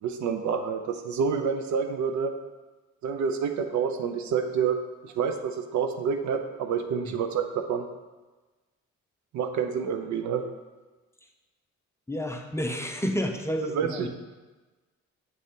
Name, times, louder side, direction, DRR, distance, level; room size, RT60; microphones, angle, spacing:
voice 1, 0.0-2.3 3.0-4.8 5.0-7.9 9.3-10.4 13.7-14.1, right 6 dB, 70° right, 7 dB, 0.6 m, -28 dB
voice 2, 12.1-14.1, equal, 10° left, 3 dB, 0.6 m, -30 dB
7.3 x 3.9 x 3.6 m, 1.2 s
cardioid pair, 90°, 30 cm